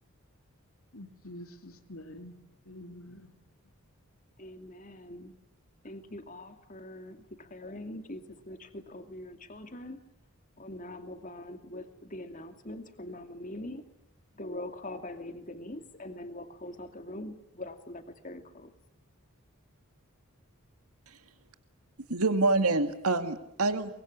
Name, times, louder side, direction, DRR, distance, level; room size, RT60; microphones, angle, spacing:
voice 1, 0.9-3.3, left 1 dB, 70° left, 7 dB, 2.9 m, -47 dB
voice 2, 4.4-5.3 5.8-10.0 10.6-13.8 14.3-18.7, left 1 dB, 35° left, 7 dB, 2.6 m, -43 dB
voice 3, 22.1-23.9, right 3 dB, 85° right, 8 dB, 2.2 m, -26 dB
24.0 x 22.5 x 9.9 m, 0.76 s
head